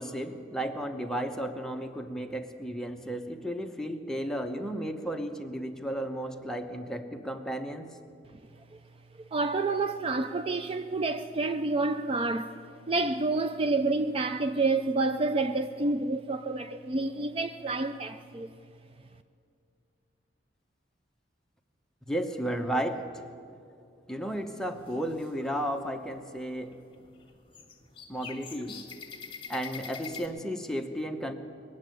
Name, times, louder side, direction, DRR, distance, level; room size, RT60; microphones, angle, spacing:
voice 1, 0.0-8.0 22.1-23.2 24.1-26.8 28.1-28.8 29.5-31.3, equal, 5° left, 0.9 m, -33 dB
voice 2, 9.3-12.6 12.9-18.5, right 3 dB, 30° right, 0.4 m, -29 dB
sound 1, 24.3-25.3 25.7-26.2 26.5-30.3, left 6 dB, 30° left, 1.5 m, -45 dB
21.0 x 7.4 x 9.2 m
head